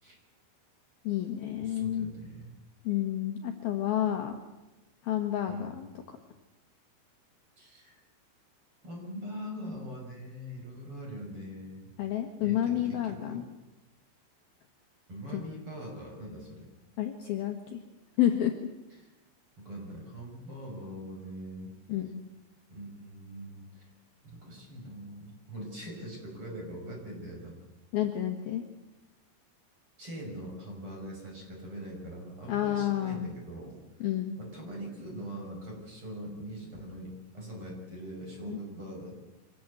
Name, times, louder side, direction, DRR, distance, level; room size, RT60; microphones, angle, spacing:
voice 1, 1.0-2.1 2.8-4.3 5.0-5.9 12.0-13.4 15.3-15.4 17.0-17.8 18.2-18.5 21.9-22.3 27.9-28.6 32.5-33.3 34.0-34.3 38.5-38.6, left 12 dB, 65° left, 3 dB, 2.8 m, -30 dB
voice 2, 1.6-2.5 5.5-5.7 7.6-8.0 8.8-11.9 12.4-13.4 15.1-16.7 19.0-19.1 19.6-21.7 22.7-23.9 24.2-27.6 30.0-33.8 34.4-39.3, equal, 25° right, 0 dB, 6.6 m, -42 dB
25.0 x 19.0 x 8.2 m, 1.1 s
omnidirectional pair, 5.7 m